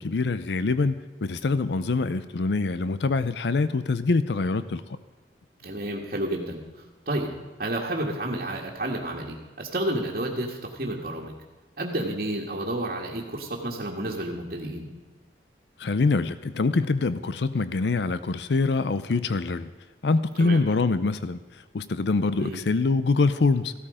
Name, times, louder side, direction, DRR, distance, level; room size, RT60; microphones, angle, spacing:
voice 1, 0.0-5.0 15.8-19.7 20.0-21.4 21.7-23.7, left 3 dB, 75° left, 14 dB, 0.5 m, -24 dB
voice 2, 5.6-6.6 7.0-7.3 7.6-11.3 11.8-14.9 20.4-20.6 22.4-22.6, right 1 dB, 55° right, -3 dB, 1.7 m, -30 dB
15.5 x 12.5 x 5.0 m, 1.3 s
head